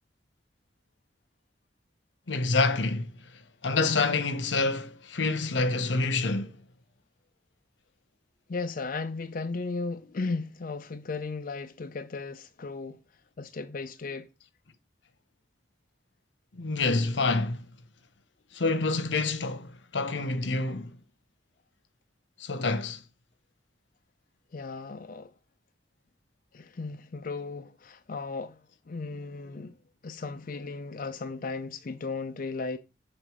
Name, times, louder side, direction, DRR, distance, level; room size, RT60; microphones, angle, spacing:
voice 1, 2.3-3.1 3.6-6.6 16.6-17.6 18.5-20.9 22.4-23.0, left 3 dB, 85° left, 0.9 m, -27 dB
voice 2, 8.5-13.0 13.4-14.3 24.5-25.3 26.5-28.6 28.9-29.8 30.0-32.8, left 3 dB, 50° left, 0.4 m, -35 dB
6.7 x 3.7 x 6.0 m
head